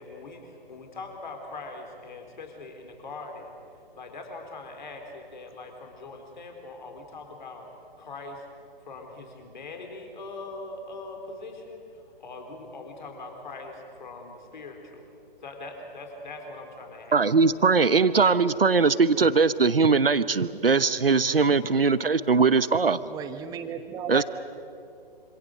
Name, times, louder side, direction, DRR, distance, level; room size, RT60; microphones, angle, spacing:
voice 1, 0.0-3.5 4.0-7.6 8.0-8.4 8.9-11.8 12.2-15.0 15.4-17.2, left 3 dB, 55° left, 4 dB, 4.3 m, -41 dB
voice 2, 17.1-23.0 24.1-24.2, right 4 dB, 75° right, 15 dB, 1.1 m, -21 dB
voice 3, 23.1-24.2, right 8 dB, 15° right, 8 dB, 1.3 m, -34 dB
27.0 x 26.5 x 6.6 m, 2.6 s
figure-of-eight pair, 130°, 29 cm